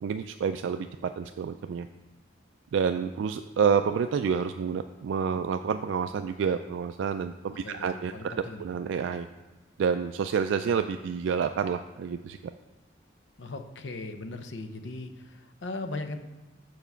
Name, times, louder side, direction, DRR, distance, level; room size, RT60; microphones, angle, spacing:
voice 1, 0.0-1.9 2.7-8.3 8.6-9.3 9.8-12.4, right 6 dB, 75° right, 8 dB, 0.3 m, -28 dB
voice 2, 7.5-8.6 13.4-16.2, left 2 dB, 70° left, 7 dB, 0.7 m, -38 dB
7.1 x 4.7 x 5.6 m, 1.2 s
head